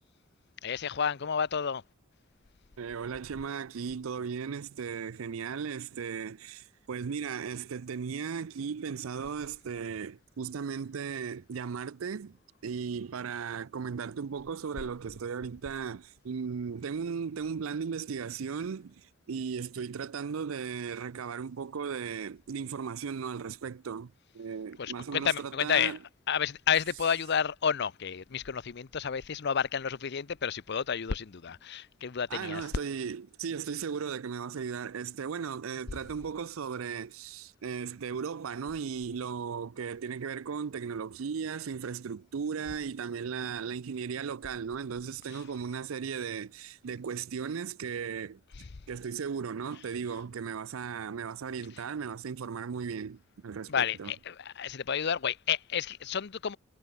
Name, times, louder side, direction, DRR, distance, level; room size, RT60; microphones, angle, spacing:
voice 1, 0.6-1.8 24.8-26.0 26.3-32.7 48.6-48.7 53.7-56.6, left 7 dB, 55° left, 0.6 m, -31 dB
voice 2, 2.8-12.4 12.6-26.0 32.3-48.4 48.9-54.1, right 6 dB, 85° right, 0.5 m, -36 dB
head